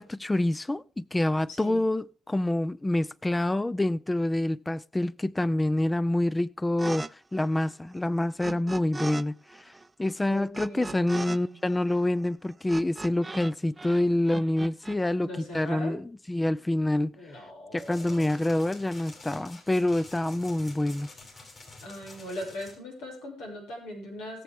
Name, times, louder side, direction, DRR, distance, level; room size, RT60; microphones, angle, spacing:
voice 1, 0.0-9.7 10.0-17.1 17.7-21.1, left 1 dB, 15° left, 0.5 m, -27 dB
voice 2, 1.5-1.8 8.4-8.8 10.2-11.6 15.2-16.0 17.1-18.3 21.8-24.4, equal, 90° left, 6.0 m, -40 dB
sound 1, 6.8-7.1 7.3-9.2 9.5-13.5 13.8-15.0, right 3 dB, 25° right, 0.6 m, -39 dB
sound 2, 17.8-22.8, left 3 dB, 40° left, 5.6 m, -48 dB
20.5 x 7.3 x 3.5 m
supercardioid pair, 70°, 0 cm